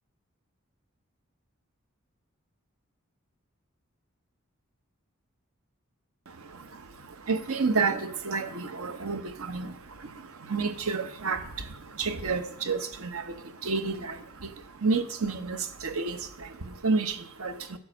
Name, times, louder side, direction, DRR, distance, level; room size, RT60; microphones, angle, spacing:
voice 1, 6.3-17.8, right 4 dB, 90° right, 0.8 m, -31 dB
9.4 x 5.2 x 6.4 m
head